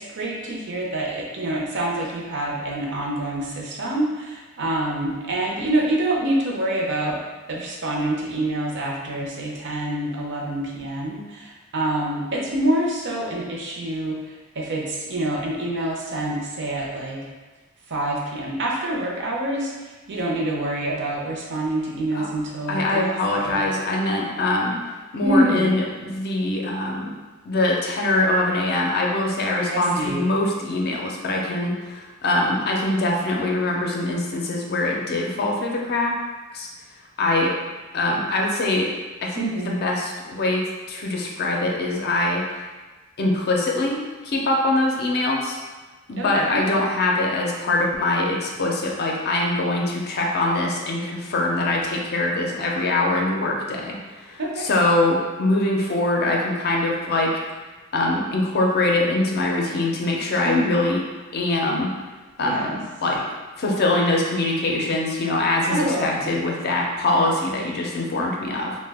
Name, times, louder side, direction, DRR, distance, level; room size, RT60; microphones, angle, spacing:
voice 1, 0.0-7.2 7.5-17.3 17.9-23.6 25.2-25.8 29.7-30.3 39.4-39.8 46.2-46.6 54.4-54.7 60.4-60.9 62.4-62.8 65.7-66.3, right 1 dB, 55° right, -2 dB, 0.6 m, -26 dB
voice 2, 22.7-24.8 25.1-27.1 27.5-36.2 36.5-36.7 37.2-37.6 37.9-38.9 39.2-40.6 40.9-42.6 43.2-45.6 46.1-57.4 57.9-61.0 61.3-61.9 62.4-63.2 63.6-68.8, left 2 dB, 50° left, -1 dB, 0.5 m, -23 dB
2.7 x 2.1 x 3.3 m, 1.2 s
head